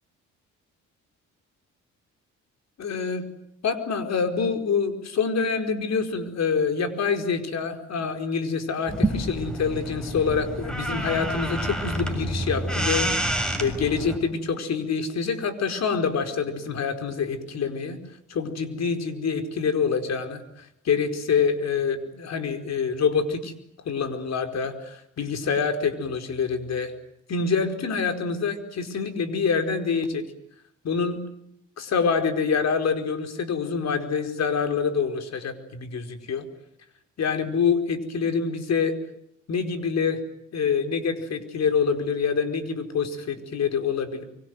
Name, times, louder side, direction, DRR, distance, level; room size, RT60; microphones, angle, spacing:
voice 1, 2.8-3.2 3.6-13.3 13.6-18.0 18.3-23.5 23.8-26.9 27.3-30.2 30.8-31.2 31.8-36.4 37.2-39.0 39.5-40.2 40.5-44.2, left 5 dB, 60° left, 7 dB, 4.8 m, -26 dB
sound 1, 8.9-14.2, right 1 dB, ahead, 6.8 m, -28 dB
25.0 x 25.0 x 9.4 m, 0.75 s
cardioid pair, 90°, 30 cm